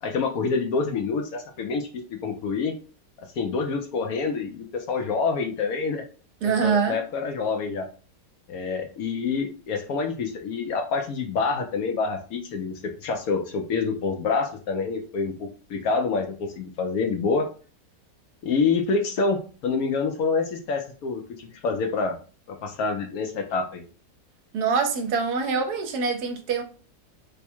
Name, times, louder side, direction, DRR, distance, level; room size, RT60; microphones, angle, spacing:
voice 1, 0.0-2.7 3.4-6.0 6.4-7.9 8.5-17.5 18.4-22.1 22.5-23.8, left 4 dB, 70° left, 1.0 m, -27 dB
voice 2, 6.4-7.0 24.5-26.6, right 5 dB, 75° right, 1.1 m, -24 dB
3.4 x 2.1 x 4.3 m
omnidirectional pair, 1.8 m